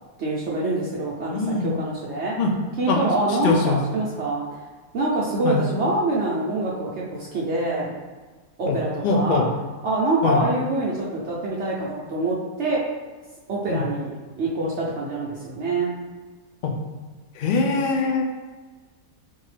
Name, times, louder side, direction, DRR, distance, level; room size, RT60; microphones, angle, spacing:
voice 1, 0.2-2.3 2.8-4.4 4.9-8.0 8.6-9.4 9.8-12.8 13.5-15.9, right 2 dB, 60° right, -5 dB, 0.8 m, -25 dB
voice 2, 1.3-1.8 2.4-2.5 2.9-3.0 3.4-3.8 5.4-5.6 8.7-8.8 9.0-9.4 10.2-10.4 13.7-13.8 16.6-16.7 17.4-18.2, left 4 dB, 75° left, 1 dB, 0.4 m, -22 dB
3.8 x 2.7 x 3.2 m, 1.3 s
omnidirectional pair, 1.5 m